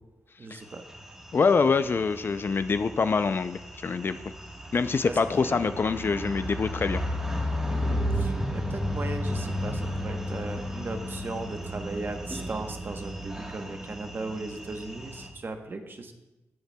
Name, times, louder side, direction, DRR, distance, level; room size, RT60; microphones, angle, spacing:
voice 1, 0.4-0.9 5.0-5.6 7.7-16.1, right 3 dB, 40° right, 6 dB, 0.9 m, -37 dB
Car driving above an old sewage tunnel, 0.7-15.3, equal, 10° right, 1.3 m, -34 dB
voice 2, 1.3-4.2 4.7-7.0, left 5 dB, 45° left, 11 dB, 0.4 m, -25 dB
sound 1, 5.9-14.0, left 1 dB, 10° left, 1.5 m, -52 dB
13.0 x 7.9 x 2.2 m, 1.0 s
cardioid pair, 70°, 5 cm